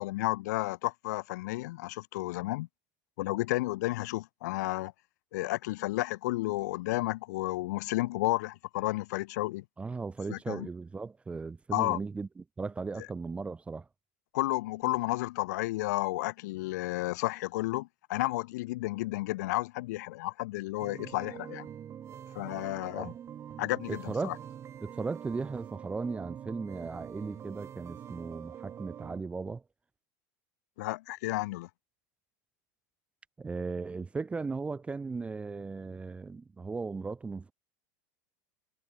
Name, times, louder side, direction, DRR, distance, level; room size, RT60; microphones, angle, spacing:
voice 1, 0.0-2.7 3.2-4.9 5.3-9.6 10.3-10.7 11.7-12.0 14.3-21.7 22.3-23.1 23.6-24.3 30.8-31.7, left 19 dB, 75° left, 1.1 m, -32 dB
voice 2, 9.8-13.9 23.0-23.1 23.9-24.3 24.8-29.6 33.4-37.5, right 4 dB, 15° right, 0.6 m, -37 dB
sound 1, 20.8-29.2, right 9 dB, 30° right, 1.9 m, -45 dB
supercardioid pair, 125°, 9 cm